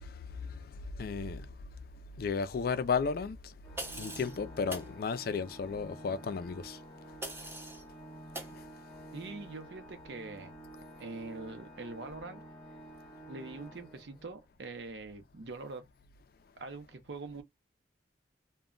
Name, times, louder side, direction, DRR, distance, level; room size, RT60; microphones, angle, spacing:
voice 1, 1.0-1.5 2.2-3.4 4.0-6.8, left 5 dB, 50° left, 0.3 m, -33 dB
Organ, 3.6-14.5, right 1 dB, 15° left, 0.8 m, -50 dB
sound 1, 3.8-4.4 4.7-4.9 7.2-7.8 8.3-8.6, right 1 dB, 10° right, 0.6 m, -41 dB
voice 2, 9.1-10.5 11.0-12.4 13.3-15.8 16.6-17.4, right 3 dB, 65° right, 0.6 m, -43 dB
2.2 x 2.1 x 3.6 m
head